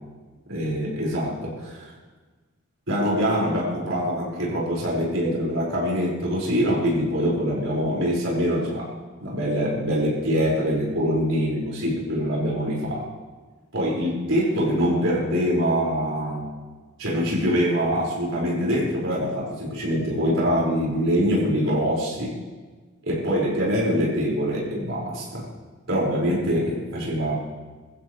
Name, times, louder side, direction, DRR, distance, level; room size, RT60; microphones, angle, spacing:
voice 1, 0.5-1.9 2.9-8.9 9.2-13.1 13.7-16.5 17.0-22.4 23.1-25.5 25.9-27.3, equal, 70° right, -5 dB, 5.3 m, -24 dB
22.0 x 14.5 x 3.3 m, 1.4 s
head